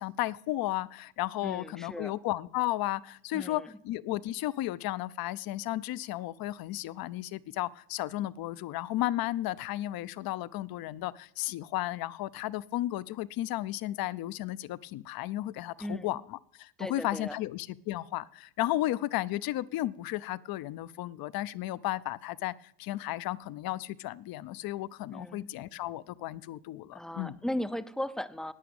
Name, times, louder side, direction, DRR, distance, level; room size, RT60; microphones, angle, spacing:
voice 1, 0.0-27.4, left 15 dB, 50° left, 18 dB, 0.7 m, -34 dB
voice 2, 1.4-2.1 3.3-3.7 15.8-16.2 16.8-17.4 25.1-25.5 26.8-28.5, left 1 dB, ahead, 12 dB, 0.5 m, -37 dB
11.5 x 9.3 x 8.8 m, 0.71 s
supercardioid pair, 115°, 47 cm